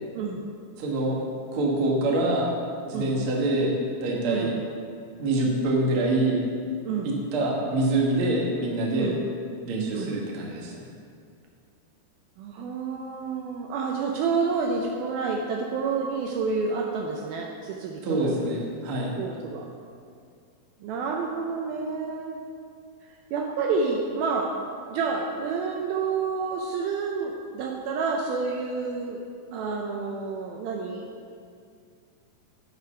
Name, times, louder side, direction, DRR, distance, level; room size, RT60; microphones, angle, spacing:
voice 1, 0.8-1.3 1.5-4.5 5.1-6.4 7.0-9.1 9.7-10.8 18.0-19.2, right 2 dB, 60° right, -2 dB, 1.4 m, -25 dB
voice 2, 12.4-18.4 19.2-19.7 20.8-22.4 23.3-24.5 24.9-29.2 29.5-31.1, right 4 dB, 80° right, 0 dB, 2.3 m, -29 dB
8.1 x 7.8 x 5.7 m, 2.2 s
omnidirectional pair, 4.8 m